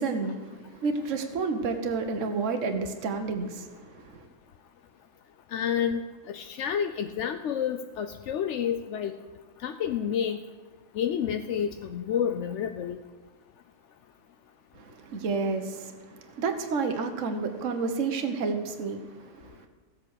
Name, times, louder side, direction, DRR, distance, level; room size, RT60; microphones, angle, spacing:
voice 1, 0.0-4.2 14.7-19.7, right 4 dB, 50° right, 6 dB, 1.4 m, -30 dB
voice 2, 5.5-6.0 6.3-9.1 9.6-10.4 11.0-13.0, left 8 dB, 65° left, 8 dB, 0.7 m, -29 dB
15.5 x 8.1 x 6.5 m, 1.3 s
omnidirectional pair, 1.8 m